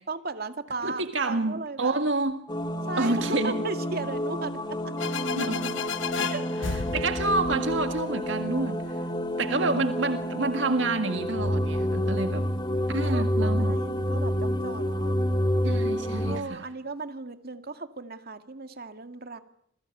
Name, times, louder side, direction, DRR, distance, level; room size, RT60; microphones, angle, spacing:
voice 1, 0.1-2.0 2.9-4.5 6.3-6.5 13.1-15.2 16.3-19.4, right 3 dB, 50° right, 2.2 m, -36 dB
voice 2, 0.8-2.4 3.0-3.6 5.4-5.8 6.6-8.8 9.4-12.5 12.9-13.8 15.6-16.7, right 2 dB, 70° right, 1.8 m, -28 dB
sound 1, 2.5-16.4, equal, 25° left, 2.2 m, -29 dB
sound 2, 5.0-8.6, left 5 dB, 75° left, 1.0 m, -33 dB
28.5 x 21.0 x 9.3 m
head